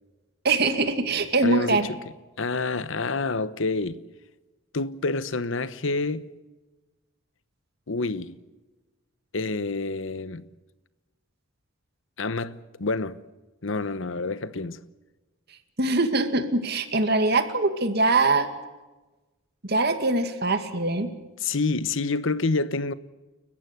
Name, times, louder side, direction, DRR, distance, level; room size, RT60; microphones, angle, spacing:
voice 1, 0.4-1.9 15.8-18.5 19.6-21.1, right 3 dB, 50° right, 2.3 m, -23 dB
voice 2, 1.4-2.0 2.4-4.0 4.7-6.3 7.9-8.4 9.3-10.4 12.2-13.2 13.6-14.8 21.4-22.9, left 3 dB, 65° left, 1.0 m, -28 dB
30.0 x 15.0 x 8.2 m
head